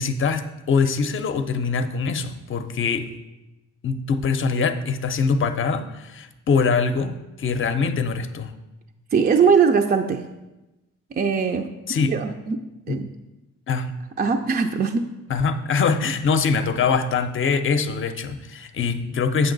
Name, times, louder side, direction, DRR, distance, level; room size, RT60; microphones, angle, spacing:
voice 1, 0.0-3.1 3.8-8.5 11.9-12.2 12.9-13.0 13.7-13.9 15.3-19.5, left 5 dB, 40° left, 9 dB, 0.7 m, -23 dB
voice 2, 9.1-10.2 11.1-11.7 12.1-12.6 12.9-13.1 14.2-15.1, right 6 dB, 30° right, 5 dB, 0.5 m, -20 dB
8.0 x 5.9 x 3.9 m, 1.0 s
cardioid pair, 90°, 30 cm